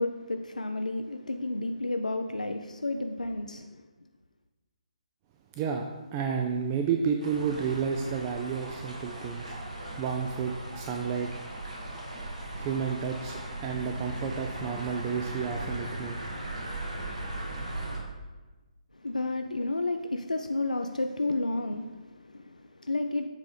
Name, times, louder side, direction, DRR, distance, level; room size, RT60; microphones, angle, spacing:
voice 1, 0.0-3.7 19.0-23.3, left 2 dB, 80° left, 6 dB, 0.3 m, -31 dB
voice 2, 5.6-9.6 10.0-11.3 12.5-16.2, right 6 dB, 20° right, 3 dB, 0.3 m, -31 dB
sound 1, 7.2-18.0, right 1 dB, 70° right, 1.6 m, -38 dB
7.3 x 3.7 x 3.9 m, 1.2 s
figure-of-eight pair, 140°, 4 cm